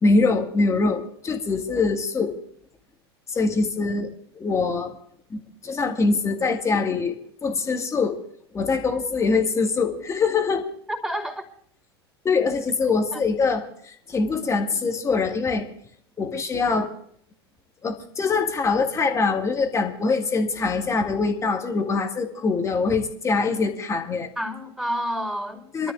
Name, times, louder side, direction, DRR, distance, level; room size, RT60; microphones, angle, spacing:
voice 1, 0.0-2.4 3.3-4.1 4.3-5.0 5.3-8.2 8.5-10.6 12.2-15.7 16.2-16.9 17.8-24.3 25.7-25.9, left 4 dB, 20° left, 4 dB, 2.0 m, -23 dB
voice 2, 10.9-11.4 13.1-13.2 24.4-25.9, equal, 5° right, -1 dB, 4.1 m, -29 dB
27.5 x 13.0 x 2.6 m, 0.64 s
figure-of-eight pair, 85°, 14 cm